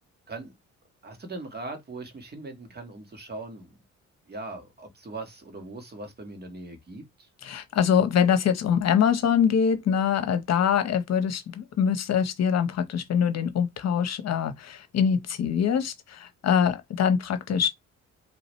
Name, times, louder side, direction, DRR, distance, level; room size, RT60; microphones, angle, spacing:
voice 1, 1.0-3.7 4.3-7.3, right 2 dB, 35° right, 1.7 m, -40 dB
voice 2, 7.4-17.7, left 7 dB, 60° left, 1.0 m, -24 dB
4.9 x 3.1 x 3.1 m
cardioid pair, 90°, 30 cm